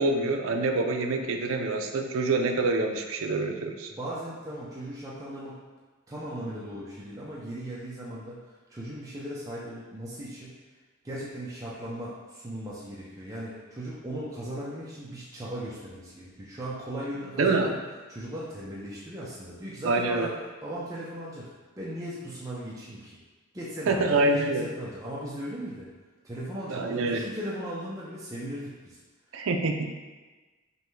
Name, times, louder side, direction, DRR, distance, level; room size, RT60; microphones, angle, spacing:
voice 1, 0.0-3.9 17.4-17.7 19.8-20.3 23.9-24.7 26.7-27.3 29.3-29.9, right 3 dB, 65° right, 4 dB, 0.4 m, -26 dB
voice 2, 3.9-5.6 6.1-8.4 8.7-10.5 11.0-17.7 18.1-20.3 20.6-21.5 21.8-23.1 23.5-25.9 26.2-29.0, right 1 dB, 15° right, -7 dB, 0.5 m, -37 dB
5.4 x 2.2 x 3.1 m, 1.3 s
head